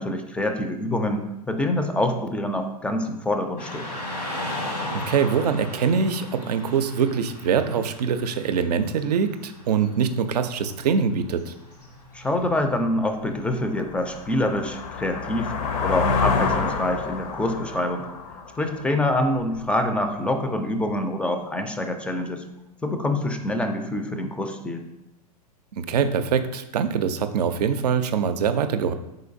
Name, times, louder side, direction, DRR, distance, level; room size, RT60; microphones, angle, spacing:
voice 1, 0.0-3.9 12.1-15.5 15.8-18.1 18.6-22.4 22.8-24.9, left 1 dB, 5° left, 6 dB, 0.4 m, -26 dB
Car passing by / Traffic noise roadway noise, 3.6-12.6, left 1 dB, 90° left, 1.4 m, -37 dB
voice 2, 4.9-11.5 25.7-28.9, right 6 dB, 75° right, 9 dB, 0.5 m, -23 dB
sound 1, 12.5-12.6 13.1-19.6, left 5 dB, 60° left, 0.6 m, -28 dB
4.9 x 3.9 x 2.6 m, 0.92 s
hypercardioid pair, 100°, 20 cm